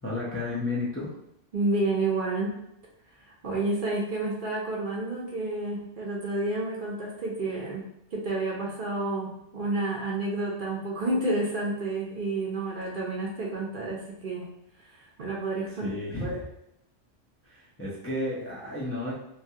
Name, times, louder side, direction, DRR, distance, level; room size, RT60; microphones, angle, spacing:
voice 1, 0.0-1.1 15.8-16.5 17.4-19.1, left 2 dB, 20° left, -7 dB, 0.3 m, -32 dB
voice 2, 1.5-2.6 3.3-7.8 8.1-14.5 15.0-15.9 16.2-16.4, right 2 dB, 55° right, -3 dB, 0.7 m, -30 dB
3.1 x 2.2 x 2.8 m, 0.81 s
omnidirectional pair, 1.2 m